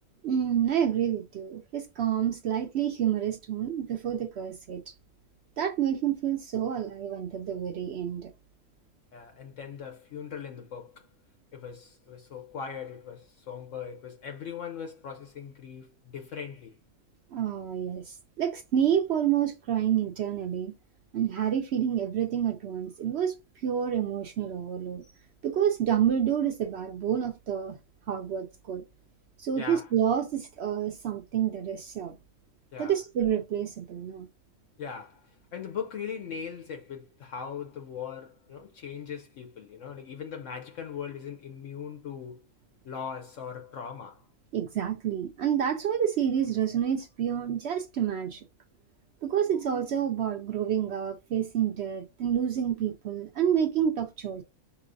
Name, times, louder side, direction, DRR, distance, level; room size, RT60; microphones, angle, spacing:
voice 1, 0.2-4.9 5.6-8.3 17.3-20.7 21.1-23.4 23.6-25.1 25.4-27.8 28.1-28.8 29.4-32.2 32.8-34.3 44.5-48.4 49.2-54.4, right 9 dB, 65° right, 0.7 m, -28 dB
voice 2, 9.1-11.1 11.5-16.8 29.6-29.9 32.7-33.0 34.8-42.4 42.8-44.3, left 7 dB, 70° left, 1.0 m, -40 dB
5.5 x 2.8 x 2.5 m
omnidirectional pair, 1.4 m